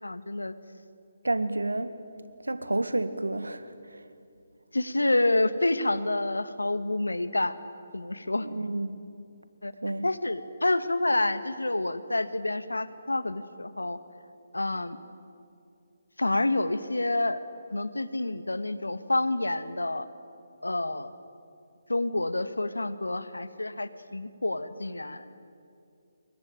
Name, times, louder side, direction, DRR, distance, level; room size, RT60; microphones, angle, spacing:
voice 1, 0.0-0.5 4.7-7.6 7.9-8.5 9.6-9.7 10.0-14.0 14.5-15.0 16.2-17.4 17.7-20.1 20.6-21.1 21.9-25.3, left 2 dB, 80° left, 12 dB, 1.6 m, -28 dB
voice 2, 1.2-2.0 2.4-4.1 8.4-8.9 9.8-10.1, right 2 dB, 80° right, 11 dB, 1.8 m, -30 dB
26.5 x 23.0 x 9.1 m, 2.5 s
figure-of-eight pair, 145°, 0 cm